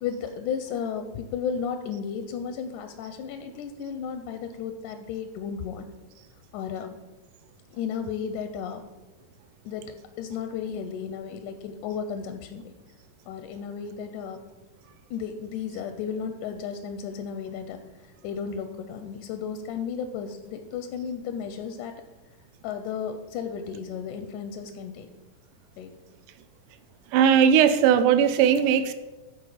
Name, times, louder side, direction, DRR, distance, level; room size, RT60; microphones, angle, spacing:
voice 1, 0.0-5.9 6.5-7.0 7.7-8.8 9.7-12.7 13.3-14.4 15.1-22.0 22.6-25.1 25.8-26.0, left 7 dB, 80° left, 8 dB, 1.9 m, -34 dB
voice 2, 27.1-28.9, right 8 dB, 80° right, 11 dB, 1.8 m, -19 dB
14.0 x 4.6 x 4.9 m, 1.1 s
omnidirectional pair, 4.1 m